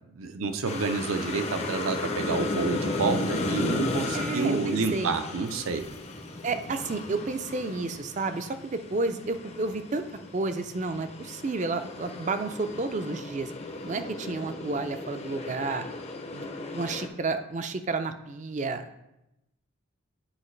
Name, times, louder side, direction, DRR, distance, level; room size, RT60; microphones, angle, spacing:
voice 1, 0.1-5.8, right 4 dB, 80° right, 7 dB, 0.6 m, -29 dB
sound 1, 0.6-17.1, left 2 dB, 30° left, 0.5 m, -35 dB
voice 2, 4.1-5.2 6.4-10.0 10.3-13.5 13.8-15.8 16.3-19.0, right 3 dB, 35° right, 9 dB, 0.4 m, -31 dB
8.7 x 5.0 x 3.2 m, 0.89 s
head